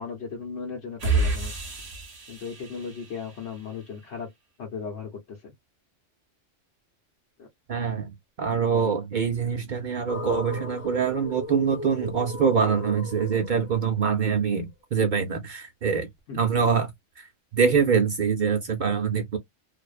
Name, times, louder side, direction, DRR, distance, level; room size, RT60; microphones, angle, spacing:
voice 1, 0.0-1.5 2.3-4.3 4.6-5.5 7.4-7.5 16.3-16.4, left 5 dB, 70° left, 1.1 m, -36 dB
sound 1, 1.0-3.7, right 3 dB, 35° right, 1.0 m, -29 dB
voice 2, 7.7-8.1 8.4-16.1 16.3-16.9 17.2-17.3 17.5-19.4, right 6 dB, 55° right, 0.5 m, -24 dB
sound 2, 10.1-14.3, left 3 dB, 30° left, 0.9 m, -37 dB
2.5 x 2.1 x 2.3 m
omnidirectional pair, 1.3 m